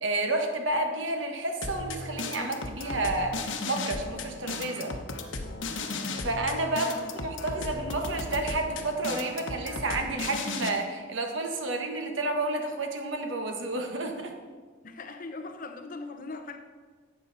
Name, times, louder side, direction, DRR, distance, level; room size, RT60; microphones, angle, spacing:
voice 1, 0.0-5.0 6.2-14.4, right 2 dB, 80° right, 4 dB, 1.3 m, -30 dB
sound 1, 1.6-10.7, left 3 dB, 85° left, 1.1 m, -35 dB
voice 2, 14.8-16.6, left 3 dB, 45° left, 6 dB, 0.9 m, -40 dB
11.5 x 8.2 x 4.1 m, 1.5 s
head